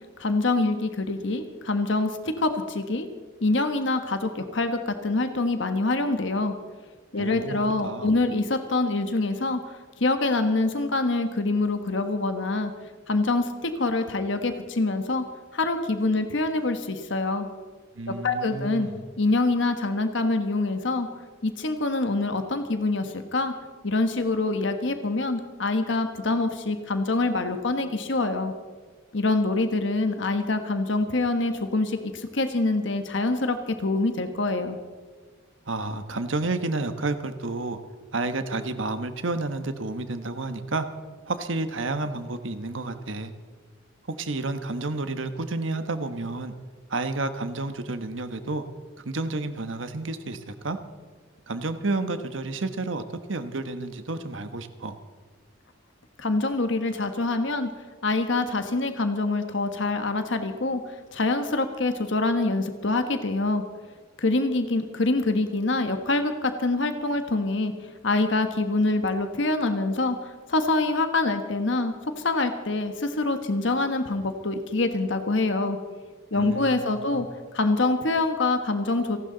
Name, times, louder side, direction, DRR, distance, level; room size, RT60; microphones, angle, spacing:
voice 1, 0.2-3.1 3.4-6.5 7.1-12.7 13.1-15.2 15.5-17.5 18.1-18.9 19.2-21.1 21.4-23.5 23.8-28.5 29.1-34.8 56.2-57.7 58.0-63.6 64.2-67.7 68.0-75.8 76.3-77.3 77.5-79.2, left 2 dB, 65° left, 7 dB, 1.3 m, -25 dB
voice 2, 7.2-8.1 18.0-19.0 35.7-37.8 38.1-40.9 41.3-43.3 44.2-46.5 46.9-48.6 49.0-50.8 51.5-53.0 53.3-54.9 76.3-77.2, right 2 dB, 70° right, 9 dB, 1.2 m, -30 dB
29.0 x 12.0 x 4.0 m, 1.4 s
head